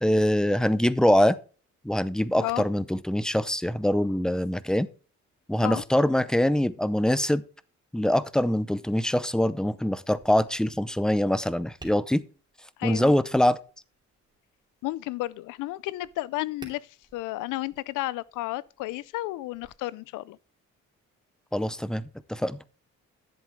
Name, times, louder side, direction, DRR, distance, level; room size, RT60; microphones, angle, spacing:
voice 1, 0.0-1.4 1.8-4.9 5.5-7.4 7.9-12.2 12.8-13.6 21.5-22.6, left 1 dB, ahead, 0.5 m, -24 dB
Tap, 11.7-19.7, right 2 dB, 15° right, 2.8 m, -55 dB
voice 2, 12.8-13.1 14.8-20.4, left 17 dB, 90° left, 0.5 m, -32 dB
10.5 x 7.6 x 3.6 m
cardioid pair, 90°, 30 cm